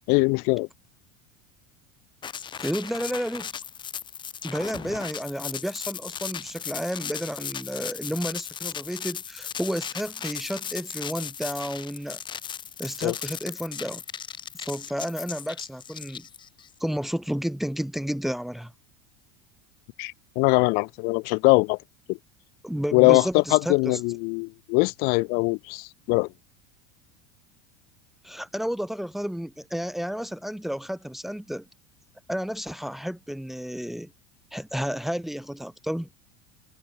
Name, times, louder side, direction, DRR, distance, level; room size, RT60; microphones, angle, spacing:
voice 1, 0.1-0.7 13.0-13.2 20.0-21.8 22.1-22.2 22.9-26.3, left 30 dB, 60° left, 3.2 m, -22 dB
sound 1, 2.2-16.7, left 8 dB, 25° left, 3.0 m, -36 dB
voice 2, 2.6-3.5 4.4-12.2 12.8-14.0 14.5-16.3 16.8-18.7 22.6-24.0 28.2-31.7 32.3-34.1 34.5-36.1, equal, ahead, 2.0 m, -31 dB
supercardioid pair, 130°, 18 cm